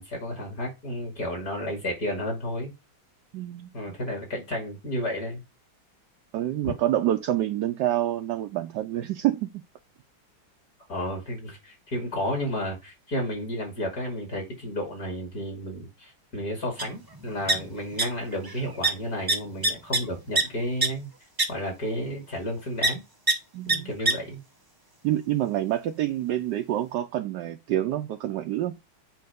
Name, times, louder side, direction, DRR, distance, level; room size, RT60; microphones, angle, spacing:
voice 1, 0.0-2.7 3.7-5.4 6.6-6.7 10.9-21.1 21.5-23.0 23.6-24.4, equal, 45° left, 3.0 m, -32 dB
voice 2, 3.3-3.7 6.3-9.6 23.5-23.9 25.0-28.8, right 13 dB, 70° right, 1.1 m, -27 dB
sound 1, 16.8-16.9 17.1-18.0 18.3-18.6 18.8-18.9 19.3-20.4 20.8-20.9 21.4-21.5 22.8-22.9 23.3-23.4 23.7-23.8 24.0-24.1, right 3 dB, 35° right, 0.3 m, -23 dB
7.7 x 5.1 x 3.5 m
omnidirectional pair, 2.2 m